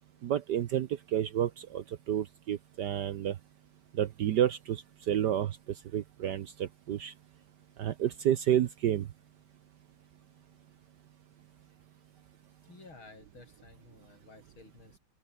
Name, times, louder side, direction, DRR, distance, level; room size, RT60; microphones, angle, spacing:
voice 1, 0.2-3.4 3.9-5.6 5.9-7.1 7.8-9.1, right 10 dB, 65° right, 1.2 m, -30 dB
voice 2, 12.6-15.0, left 3 dB, 70° left, 6.4 m, -54 dB
open air
omnidirectional pair, 2.4 m